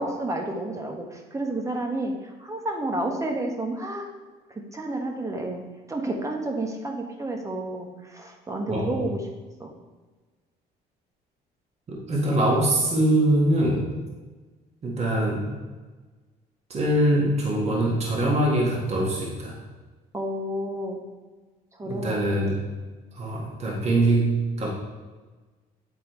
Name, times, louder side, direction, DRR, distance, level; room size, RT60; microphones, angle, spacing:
voice 1, 0.0-4.1 4.5-5.6 5.9-9.2 9.6-9.7 20.1-21.0 21.7-22.4, right 1 dB, 20° right, 2 dB, 1.2 m, -30 dB
voice 2, 8.7-9.0 11.9-13.9 14.8-15.6 16.7-19.6 21.8-22.6 23.1-24.7, right 1 dB, 40° right, -3 dB, 1.8 m, -23 dB
8.5 x 3.7 x 4.5 m, 1.3 s
cardioid pair, 110°, 17 cm